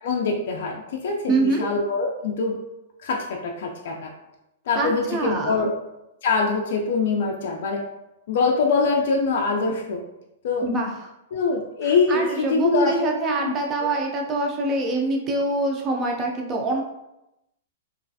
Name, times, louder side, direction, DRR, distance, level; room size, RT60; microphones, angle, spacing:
voice 1, 0.0-2.6 3.0-4.1 4.7-5.7 6.2-7.8 8.3-10.0 10.4-10.7 11.3-13.0 13.4-13.5 13.8-13.9, left 4 dB, 50° left, 0 dB, 0.3 m, -23 dB
voice 2, 1.3-1.7 4.8-5.7 10.6-10.9 11.8-16.8, right 2 dB, 15° right, 1 dB, 0.4 m, -25 dB
3.1 x 2.4 x 2.6 m, 0.90 s
supercardioid pair, 175°, 0 cm